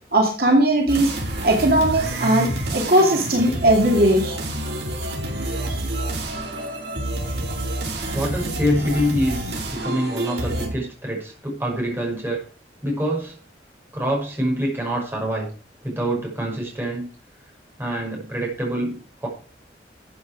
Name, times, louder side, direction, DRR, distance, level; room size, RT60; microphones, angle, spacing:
voice 1, 0.1-1.1 1.4-4.3 5.7-5.8, right 1 dB, 55° right, 1 dB, 2.5 m, -18 dB
sound 1, 0.9-10.7, right 1 dB, 75° right, 4.8 m, -28 dB
voice 2, 8.1-12.4 12.8-13.3 13.9-15.5 15.8-17.1 17.8-19.3, equal, 15° right, -2 dB, 5.8 m, -25 dB
13.5 x 8.3 x 4.8 m, 0.38 s
head